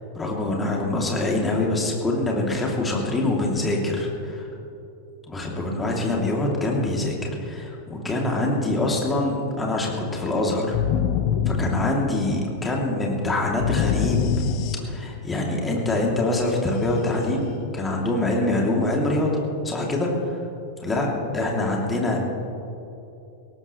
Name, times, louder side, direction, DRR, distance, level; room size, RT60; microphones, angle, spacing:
voice 1, 0.1-4.5 5.3-10.8 11.5-14.2 14.9-19.3 19.6-20.4 20.8-22.2, left 2 dB, 15° left, -1 dB, 2.9 m, -24 dB
sound 1, 10.7-12.5 13.6-15.3, left 8 dB, 45° left, 1.1 m, -24 dB
20.5 x 17.5 x 3.2 m, 2.9 s
figure-of-eight pair, 90°, 0 cm